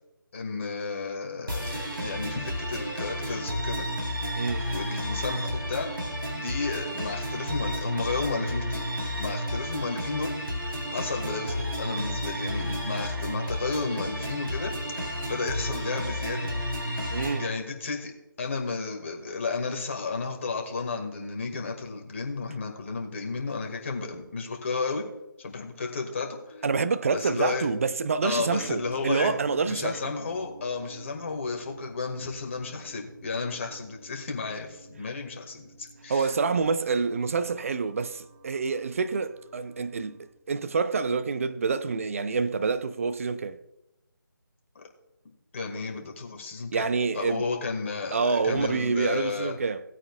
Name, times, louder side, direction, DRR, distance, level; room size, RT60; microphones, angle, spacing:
voice 1, 0.3-3.9 4.7-5.9 6.3-8.8 9.2-10.4 10.9-14.7 15.0-16.5 17.4-18.1 18.4-25.0 25.4-26.6 27.1-27.7 28.2-29.3 29.7-36.3 44.8-44.9 45.5-46.9 47.1-49.6, left 4 dB, 35° left, 1.9 m, -33 dB
sound 1, 1.5-17.5, equal, 80° right, 3.7 m, -32 dB
voice 2, 4.4-4.7 17.1-17.5 26.6-30.1 36.1-40.2 40.5-43.6 46.7-47.4 48.1-49.8, right 4 dB, 40° right, 0.6 m, -27 dB
sound 2, 26.4-28.0 28.3-40.3, right 2 dB, 65° right, 2.5 m, -49 dB
18.5 x 8.8 x 2.4 m
figure-of-eight pair, 155°, 12 cm